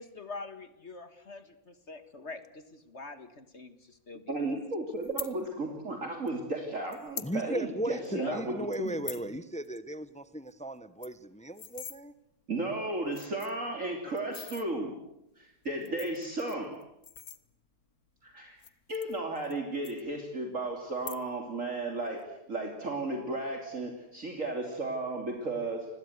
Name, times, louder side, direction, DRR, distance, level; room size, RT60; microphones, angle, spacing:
voice 1, 0.0-4.6 8.1-8.4, left 3 dB, 40° left, 11 dB, 1.8 m, -44 dB
voice 2, 4.3-8.9 12.5-14.9 15.4-16.8 18.2-18.6 18.9-25.9, right 2 dB, 40° right, 3 dB, 3.3 m, -34 dB
sound 1, 5.0-5.3 6.3-6.4 6.9-7.3 7.7-7.8 8.0-8.3 8.7-9.3 9.6-9.8 10.1-10.2 10.5-10.6 10.8-12.0 12.7-12.8 13.1-13.7 14.2-14.7 15.6-17.8 18.5-19.6 19.8-20.5 20.9-21.5 21.8-22.2, left 8 dB, 55° left, 1.6 m, -43 dB
voice 3, 7.2-12.1, right 1 dB, 10° left, 14 dB, 0.4 m, -36 dB
29.5 x 21.0 x 8.1 m, 0.84 s
omnidirectional pair, 2.0 m